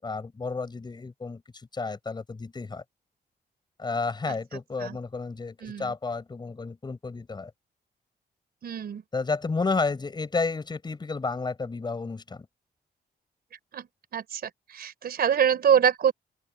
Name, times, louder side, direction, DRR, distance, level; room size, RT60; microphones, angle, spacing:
voice 1, 0.0-1.4 1.7-2.8 3.8-7.5 9.1-12.5, left 4 dB, 25° left, 5.7 m, -31 dB
voice 2, 5.6-5.9 8.6-9.0 13.7-13.9 14.1-16.1, right 8 dB, 65° right, 4.0 m, -25 dB
open air
wide cardioid pair, 165°, 17 cm